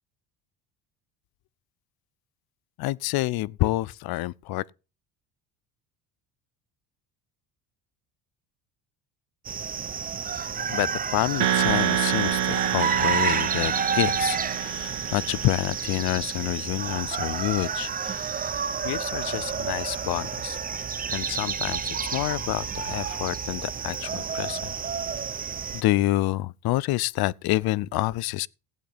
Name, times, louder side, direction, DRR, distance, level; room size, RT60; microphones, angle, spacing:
voice 1, 2.8-4.6 10.7-18.3 18.8-20.6 21.1-24.7 25.7-28.5, left 17 dB, 55° left, 0.6 m, -28 dB
sound 1, 9.4-25.8, right 6 dB, 20° right, 0.5 m, -30 dB
sound 2, 11.4-16.3, right 11 dB, 85° right, 2.0 m, -28 dB
16.0 x 8.4 x 4.0 m
supercardioid pair, 90°, 45 cm